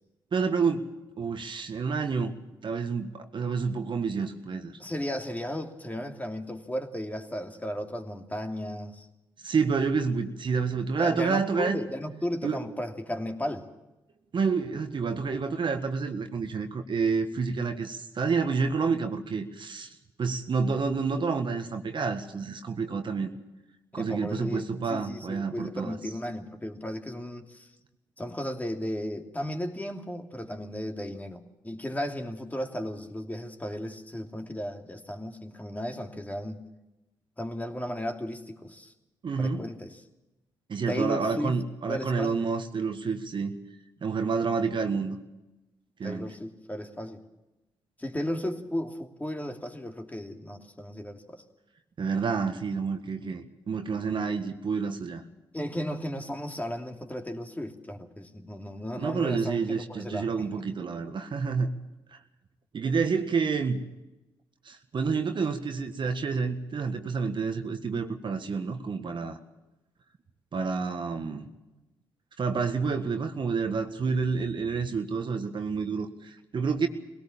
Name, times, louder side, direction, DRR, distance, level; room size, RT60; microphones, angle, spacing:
voice 1, 0.3-0.9 1.2-2.3 2.6-4.7 9.4-11.8 12.4-12.6 14.3-19.9 20.2-23.3 23.9-25.9 39.2-39.7 40.7-43.6 44.0-45.2 46.0-46.3 52.0-55.2 59.0-61.7 62.1-62.2 62.7-63.8 64.7-69.4 70.5-71.5 72.4-76.9, right 5 dB, 50° right, 6 dB, 1.6 m, -29 dB
voice 2, 4.8-9.1 11.0-13.7 23.9-27.7 28.2-36.6 37.4-38.9 39.4-40.0 40.9-41.6 41.9-42.5 46.0-47.2 48.0-51.4 55.5-60.6, equal, 15° left, 3 dB, 2.8 m, -35 dB
21.0 x 17.5 x 7.3 m, 0.98 s
hypercardioid pair, 45°, 11 cm